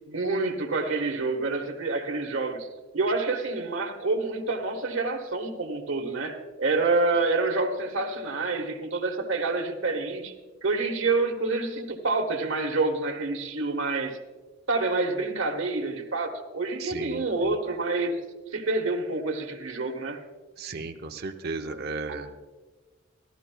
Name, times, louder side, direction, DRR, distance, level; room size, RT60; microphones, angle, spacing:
voice 1, 0.1-2.7 2.9-10.3 10.6-14.2 14.7-18.2 18.5-20.2 22.1-22.2, right 3 dB, 65° right, 3 dB, 1.4 m, -27 dB
voice 2, 16.8-17.2 20.6-22.3, right 3 dB, 50° right, 3 dB, 0.7 m, -34 dB
16.5 x 12.5 x 2.3 m, 1.3 s
head